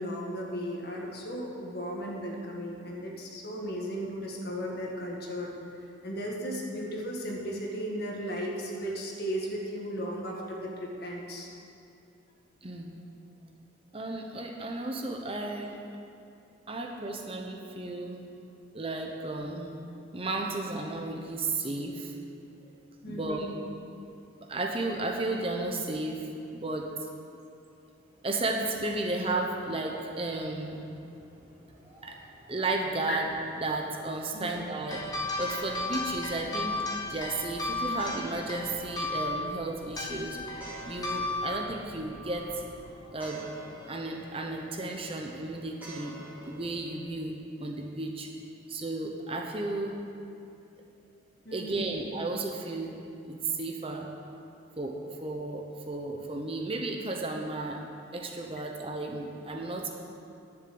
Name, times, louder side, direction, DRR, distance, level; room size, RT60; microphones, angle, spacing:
voice 1, 0.0-5.5 6.0-11.5 22.6-22.7 23.0-23.6 33.1-33.2 34.3-34.5 51.4-52.0, equal, 50° left, -1 dB, 1.9 m, -35 dB
voice 2, 12.6-12.9 13.9-15.8 16.7-18.2 18.7-19.8 20.1-22.1 23.0-23.5 24.5-27.1 28.2-30.8 32.0-32.2 32.5-33.3 33.6-35.0 35.4-40.4 40.8-42.5 43.1-43.4 43.9-46.2 46.4-48.3 48.7-50.0 51.5-53.0 53.2-54.1 54.8-57.8 58.1-59.9, right 2 dB, 30° right, 2 dB, 0.9 m, -33 dB
sound 1, 28.0-47.0, equal, 10° right, 2.9 m, -51 dB
sound 2, 34.9-42.8, left 2 dB, 20° left, 1.4 m, -35 dB
10.5 x 7.3 x 7.9 m, 2.6 s
head